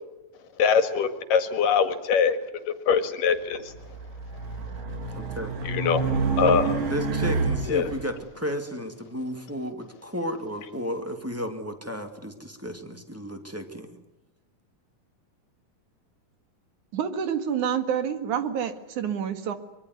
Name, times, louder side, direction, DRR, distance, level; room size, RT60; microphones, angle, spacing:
voice 1, 0.6-2.4 2.7-3.7 5.6-6.0 6.3-6.8 7.7-7.9, left 6 dB, 75° left, 10 dB, 3.4 m, -23 dB
Race car auto racing, 3.7-8.0, right 4 dB, 85° right, 4.8 m, -28 dB
voice 2, 5.1-5.5 6.9-13.9, equal, 5° right, 6 dB, 1.9 m, -33 dB
voice 3, 16.9-19.5, right 8 dB, 65° right, 9 dB, 3.2 m, -28 dB
24.5 x 23.0 x 9.7 m, 0.96 s
omnidirectional pair, 3.8 m